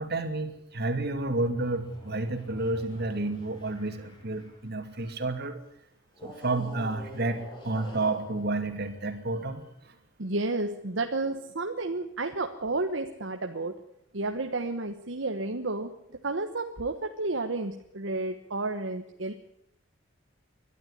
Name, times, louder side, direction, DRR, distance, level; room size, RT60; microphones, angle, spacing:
voice 1, 0.0-5.6 6.2-9.6, right 2 dB, 55° right, 7 dB, 2.6 m, -30 dB
sound 1, 0.7-5.3 6.1-9.7, left 1 dB, 25° left, 6.6 m, -49 dB
voice 2, 10.2-13.8 14.1-19.3, right 2 dB, 70° right, 6 dB, 1.2 m, -31 dB
21.5 x 12.5 x 10.0 m, 0.78 s
head